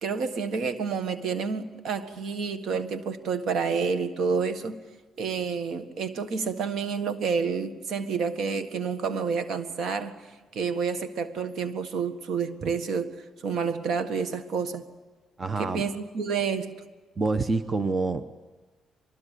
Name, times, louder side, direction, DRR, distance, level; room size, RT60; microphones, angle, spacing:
voice 1, 0.0-4.8 5.2-10.2 10.5-14.8 15.6-16.8, right 5 dB, 70° right, 1.7 m, -29 dB
voice 2, 15.4-15.9 17.2-18.2, right 3 dB, 30° right, 1.0 m, -27 dB
23.5 x 21.0 x 8.4 m
cardioid pair, 90°, 0 cm